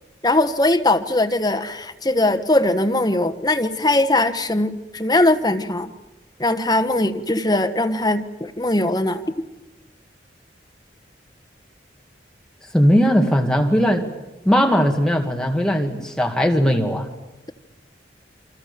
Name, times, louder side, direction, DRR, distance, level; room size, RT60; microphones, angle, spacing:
voice 1, 0.2-5.9 6.4-9.2, left 2 dB, 20° left, 7 dB, 1.4 m, -20 dB
voice 2, 12.7-14.1 14.4-17.1, equal, 5° left, 2 dB, 2.2 m, -18 dB
29.0 x 25.0 x 6.9 m, 1.0 s
head